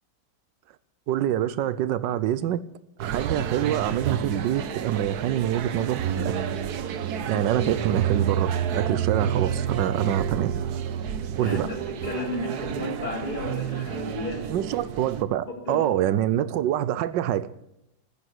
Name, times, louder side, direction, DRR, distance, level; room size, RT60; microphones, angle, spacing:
voice 1, 1.1-2.6 3.0-6.4 7.3-10.5 11.4-11.7 14.5-17.5, right 11 dB, 85° right, 16 dB, 1.4 m, -25 dB
sound 1, 3.0-15.2, right 8 dB, 65° right, 1.4 m, -30 dB
voice 2, 11.9-14.7 15.7-15.9, left 1 dB, 25° left, -6 dB, 3.8 m, -33 dB
14.0 x 10.5 x 8.0 m, 0.84 s
omnidirectional pair, 1.9 m